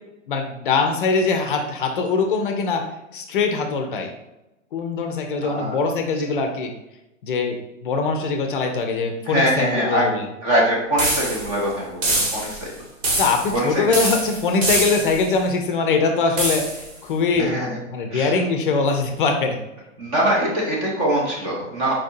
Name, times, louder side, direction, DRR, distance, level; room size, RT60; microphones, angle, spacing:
voice 1, 0.3-2.9 3.1-4.1 4.7-6.7 7.2-7.6 7.8-10.2 13.2-17.5 17.9-19.6, left 4 dB, 45° left, 4 dB, 0.5 m, -22 dB
voice 2, 5.4-5.8 9.2-10.1 10.4-12.7 13.5-14.0 17.3-17.8 18.1-18.4 20.0-21.9, equal, 15° right, -3 dB, 0.5 m, -23 dB
sound 1, 11.0-11.6 12.0-12.7 13.0-13.6 13.9-15.3 16.4-16.9, right 2 dB, 75° right, 1.5 m, -24 dB
4.5 x 2.6 x 2.5 m, 0.93 s
hypercardioid pair, 125°, 39 cm